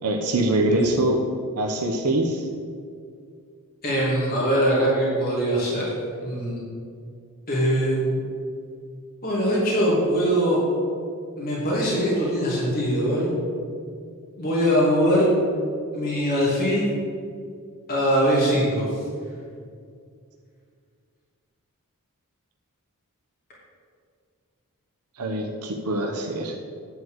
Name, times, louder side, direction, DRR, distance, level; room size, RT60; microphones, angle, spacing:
voice 1, 0.0-1.2 1.6-2.5 25.2-26.6, right 1 dB, 85° right, 2 dB, 0.9 m, -24 dB
voice 2, 3.8-5.8 6.2-6.6 7.5-8.1 9.2-10.6 11.4-13.3 14.4-15.3 15.9-16.8 17.9-18.8, equal, 45° left, -7 dB, 2.8 m, -22 dB
10.0 x 4.7 x 8.0 m, 2.2 s
head